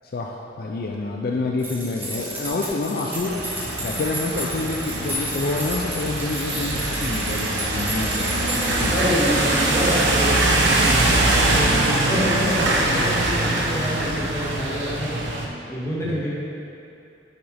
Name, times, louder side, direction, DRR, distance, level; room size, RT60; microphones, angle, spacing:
voice 1, 0.0-3.4 3.8-9.0 12.8-13.4 16.0-16.1, left 3 dB, 60° left, 0 dB, 0.4 m, -28 dB
sound 1, 1.6-9.3, equal, 10° right, 1.1 m, -33 dB
sound 2, 3.2-15.4, right 2 dB, 90° right, 0.7 m, -23 dB
voice 2, 8.6-13.1 13.4-15.1 15.7-16.3, equal, 15° left, -8 dB, 1.5 m, -27 dB
7.0 x 5.8 x 3.4 m, 2.6 s
head